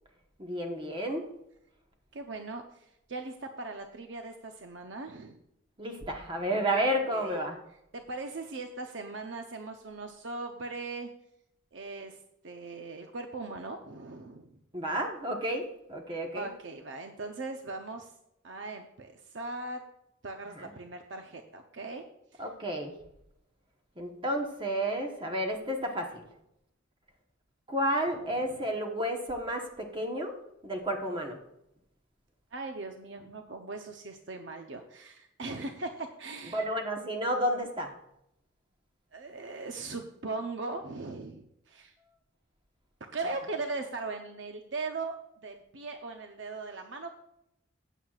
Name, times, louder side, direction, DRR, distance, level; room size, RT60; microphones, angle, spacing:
voice 1, 0.4-1.3 5.8-7.6 14.7-16.5 20.6-20.7 22.4-22.9 24.0-26.2 27.7-30.4 30.6-31.4 36.5-37.9, equal, 25° right, 2 dB, 1.1 m, -31 dB
voice 2, 2.1-5.4 7.1-7.4 7.9-11.1 11.7-12.2 12.4-14.6 16.3-18.1 18.4-19.8 20.2-22.0 22.3-22.5 28.2-28.7 32.5-36.6 39.1-41.9 43.1-45.1 45.4-47.1, right 3 dB, 65° right, 5 dB, 0.7 m, -39 dB
15.0 x 9.1 x 2.4 m, 0.80 s
head